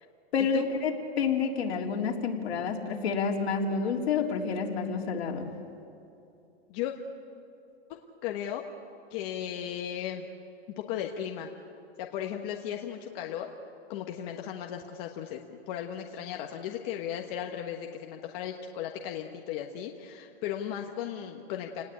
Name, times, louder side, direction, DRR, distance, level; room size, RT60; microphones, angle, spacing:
voice 1, 0.3-5.5, left 5 dB, 65° left, 1 dB, 3.6 m, -29 dB
voice 2, 8.2-8.6 9.1-10.3 10.8-11.5 12.0-13.5 13.9-21.8, left 10 dB, 35° left, 2 dB, 1.4 m, -36 dB
29.5 x 19.5 x 8.6 m, 2.6 s
hypercardioid pair, 155°, 34 cm